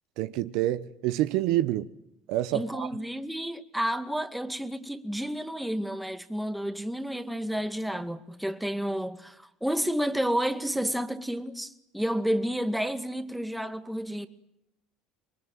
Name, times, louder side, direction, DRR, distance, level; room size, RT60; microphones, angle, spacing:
voice 1, 0.2-1.9 2.3-2.9, right 14 dB, 70° right, 1.0 m, -27 dB
voice 2, 2.5-14.3, equal, ahead, 2.1 m, -30 dB
26.5 x 22.5 x 9.0 m
supercardioid pair, 95°, 0 cm